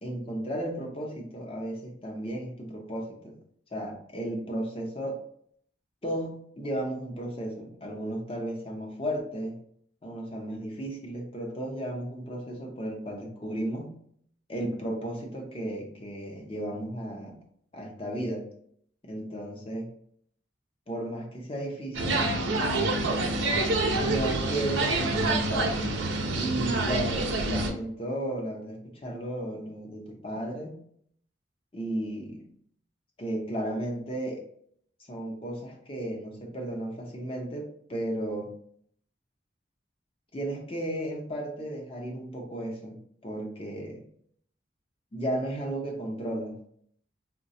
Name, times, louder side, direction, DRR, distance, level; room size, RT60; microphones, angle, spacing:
voice 1, 0.0-3.4 3.7-5.2 6.0-9.6 10.0-14.0 14.5-17.4 17.7-18.4 19.0-19.9 20.9-22.3 24.0-25.9 26.4-30.8 31.7-32.5 33.2-34.4 35.1-38.5 40.3-44.0 45.1-46.6, right 1 dB, 30° left, 0 dB, 0.7 m, -34 dB
sound 1, 21.9-27.7, right 2 dB, 85° right, 0.6 m, -27 dB
3.9 x 2.2 x 2.7 m, 0.65 s
head